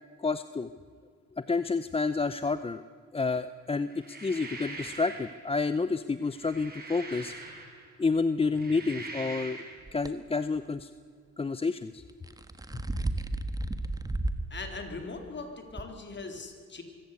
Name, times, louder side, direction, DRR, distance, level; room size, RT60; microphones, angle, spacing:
voice 1, 0.2-0.7 1.4-2.8 3.1-7.3 8.0-9.6 9.9-10.9 11.4-12.0, left 4 dB, 20° left, 13 dB, 0.6 m, -29 dB
sound 1, 3.9-5.4 6.2-7.9 8.4-9.8, right 3 dB, 30° right, 5.7 m, -43 dB
sound 2, 9.9-10.1 12.1-14.5 14.9-15.0 15.8-15.9, right 2 dB, 10° right, 1.5 m, -32 dB
voice 2, 14.5-16.8, left 3 dB, 35° left, 5 dB, 3.9 m, -40 dB
24.0 x 15.5 x 8.3 m, 2.2 s
cardioid pair, 90°, 30 cm